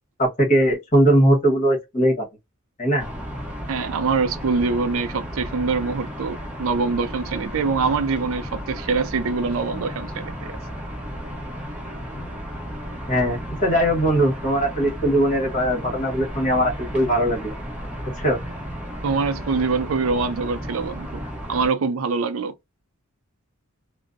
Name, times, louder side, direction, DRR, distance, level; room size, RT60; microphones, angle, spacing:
voice 1, 0.2-2.3 2.8-3.1 12.1-12.3 13.1-17.5 18.2-18.4, right 1 dB, 35° left, 1.3 m, -20 dB
sound 1, 3.0-21.7, equal, 5° right, 0.8 m, -34 dB
voice 2, 3.7-10.6 19.0-21.2 21.5-22.5, right 4 dB, 70° right, 0.4 m, -24 dB
2.5 x 2.0 x 2.4 m
head